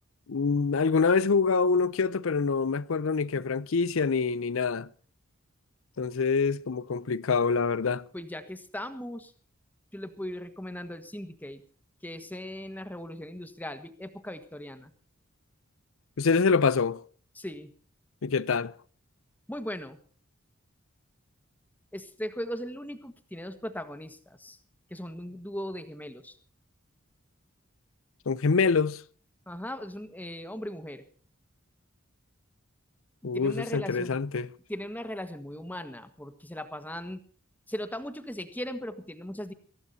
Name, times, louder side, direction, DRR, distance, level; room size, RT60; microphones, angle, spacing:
voice 1, 0.3-4.9 6.0-8.0 16.2-17.0 18.2-18.7 28.3-29.0 33.2-34.5, left 5 dB, 70° left, 0.6 m, -25 dB
voice 2, 8.1-9.3 9.9-11.6 12.0-14.9 17.3-17.7 19.5-20.0 21.9-24.6 24.9-26.4 29.5-31.0 33.2-34.2 34.7-37.2 37.7-39.5, equal, 10° left, 1.6 m, -38 dB
23.0 x 17.0 x 2.8 m
head